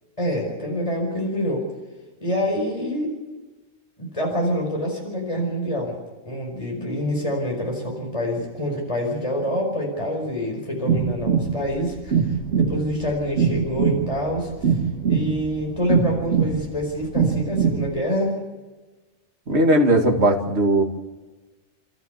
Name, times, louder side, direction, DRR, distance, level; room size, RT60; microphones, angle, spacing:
voice 1, 0.2-1.6 2.2-3.1 4.0-6.0 6.2-14.8 15.1-18.4, equal, 30° left, 0 dB, 5.1 m, -26 dB
sound 1, 10.9-17.9, right 6 dB, 80° right, 1.8 m, -23 dB
voice 2, 19.5-20.8, right 1 dB, 65° right, 3 dB, 2.5 m, -18 dB
30.0 x 13.5 x 8.1 m, 1.2 s
omnidirectional pair, 1.2 m